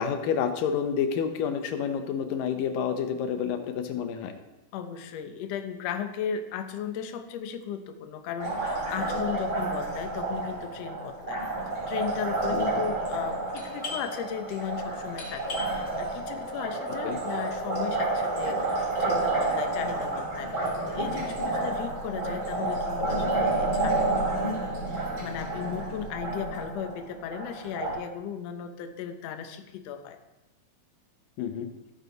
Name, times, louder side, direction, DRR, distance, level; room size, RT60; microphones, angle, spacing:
voice 1, 0.0-4.3 12.5-12.7 17.0-17.2 31.4-31.7, left 7 dB, 90° left, 7 dB, 2.6 m, -29 dB
voice 2, 4.7-11.4 11.9-30.2, left 8 dB, 65° left, 7 dB, 1.8 m, -36 dB
Liquid, 8.4-27.9, right 2 dB, 35° right, 3.7 m, -30 dB
Doorbell, 13.5-19.0, left 3 dB, 40° left, 3.0 m, -44 dB
15.0 x 9.2 x 4.0 m, 1.0 s
omnidirectional pair, 3.8 m